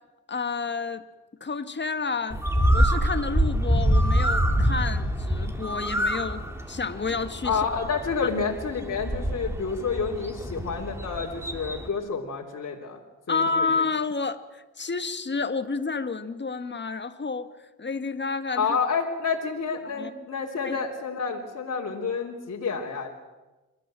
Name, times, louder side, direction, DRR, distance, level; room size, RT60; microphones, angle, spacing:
voice 1, 0.3-1.0 1.4-2.4 2.7-7.7 13.3-18.7 19.9-20.1 20.6-20.8, left 4 dB, 30° left, 10 dB, 1.9 m, -30 dB
Bird, 2.3-11.9, equal, 5° right, 3.0 m, -26 dB
voice 2, 7.4-13.0 13.3-13.7 18.6-23.1, left 5 dB, 45° left, -2 dB, 3.5 m, -29 dB
28.0 x 13.0 x 7.7 m, 1.2 s
supercardioid pair, 60°, 35 cm